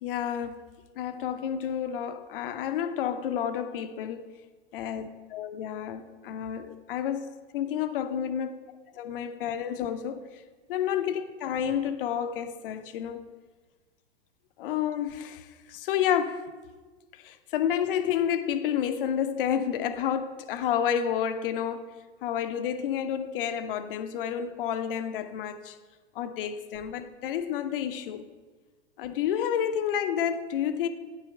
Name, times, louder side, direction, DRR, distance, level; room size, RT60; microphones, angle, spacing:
voice 1, 0.0-0.6 1.0-4.3 4.7-7.3 7.5-8.6 9.0-10.2 10.7-13.2 14.6-16.5 17.2-21.8 22.2-25.8 26.2-28.2 29.0-30.9, left 9 dB, 55° left, 10 dB, 0.7 m, -30 dB
9.6 x 5.7 x 4.3 m, 1.3 s
hypercardioid pair, 105°, 33 cm